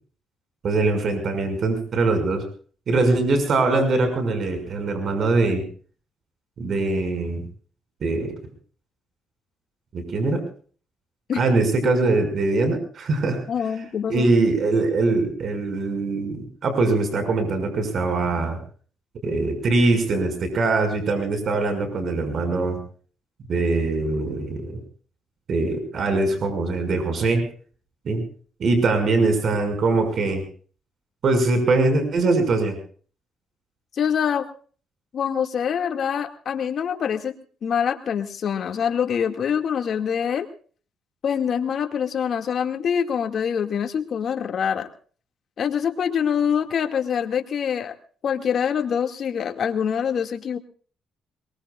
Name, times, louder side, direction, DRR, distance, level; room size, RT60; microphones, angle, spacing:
voice 1, 0.6-2.4 2.9-5.6 6.6-7.4 8.0-8.3 9.9-10.4 11.4-13.4 14.1-18.6 19.2-22.8 23.5-24.8 25.5-27.5 28.0-28.2 28.6-30.4 31.2-32.8, right 3 dB, 55° right, 7 dB, 6.1 m, -22 dB
voice 2, 13.5-14.3 33.9-34.5 35.1-37.3 37.6-40.5 41.2-44.9 45.6-47.9 48.2-50.6, left 7 dB, 60° left, 5 dB, 2.2 m, -25 dB
23.0 x 22.5 x 2.5 m, 0.43 s
cardioid pair, 90°, 0 cm